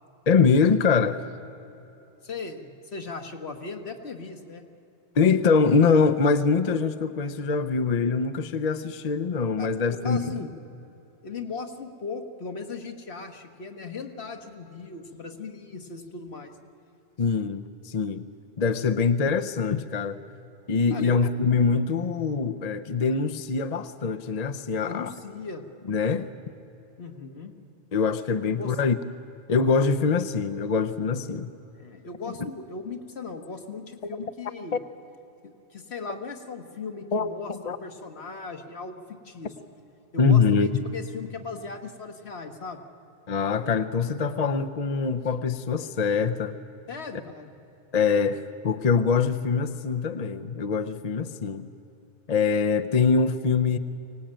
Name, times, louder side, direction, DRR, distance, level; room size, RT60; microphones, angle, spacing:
voice 1, 0.3-1.2 5.2-10.3 17.2-18.2 18.6-20.2 20.7-25.1 25.9-26.3 27.9-29.0 29.5-31.5 32.4-32.5 34.0-34.2 37.1-37.8 40.2-40.8 43.3-46.6 47.9-51.7 52.3-53.8, left 5 dB, 45° left, 9 dB, 0.7 m, -24 dB
voice 2, 2.2-4.6 9.6-10.5 11.2-16.6 20.9-21.2 24.9-25.7 27.0-27.5 28.4-28.7 31.7-34.8 35.4-39.5 40.1-42.8 46.9-47.5, left 4 dB, 65° left, 5 dB, 1.7 m, -38 dB
24.0 x 18.0 x 8.9 m, 2.9 s
omnidirectional pair, 1.2 m